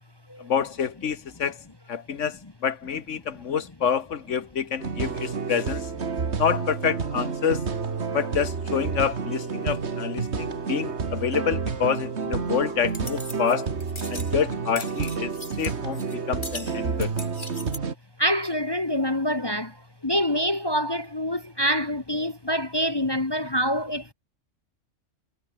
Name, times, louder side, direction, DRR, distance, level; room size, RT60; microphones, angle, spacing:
voice 1, 0.4-5.9 6.4-7.7 8.1-13.7 14.1-15.3 15.6-17.1, left 7 dB, 70° left, 1.5 m, -27 dB
sound 1, 4.8-17.9, right 5 dB, 60° right, 2.0 m, -30 dB
sound 2, 12.9-13.6 13.8-14.3 14.8-16.2 16.4-17.8, left 1 dB, 40° left, 7.8 m, -39 dB
voice 2, 18.2-19.7 20.0-24.1, equal, 20° left, 1.1 m, -25 dB
omnidirectional pair, 1.3 m